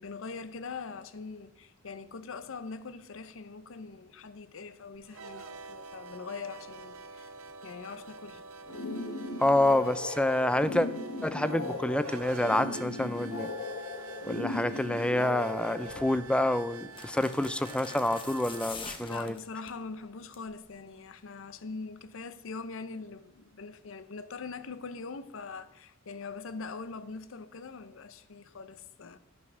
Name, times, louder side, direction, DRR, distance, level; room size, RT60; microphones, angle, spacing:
voice 1, 0.0-7.3 7.6-8.5 19.0-29.2, left 4 dB, 65° left, 0.6 m, -42 dB
sound 1, 5.0-18.7, right 4 dB, 85° right, 0.8 m, -47 dB
sound 2, 8.7-16.0, left 2 dB, 85° left, 1.0 m, -37 dB
voice 2, 9.4-10.9 11.2-13.5 14.3-19.3, left 1 dB, 5° left, 0.3 m, -27 dB
sound 3, 15.9-16.1 16.9-19.8 20.2-20.5 20.8-20.9, left 4 dB, 25° left, 0.9 m, -45 dB
11.5 x 6.0 x 6.1 m
head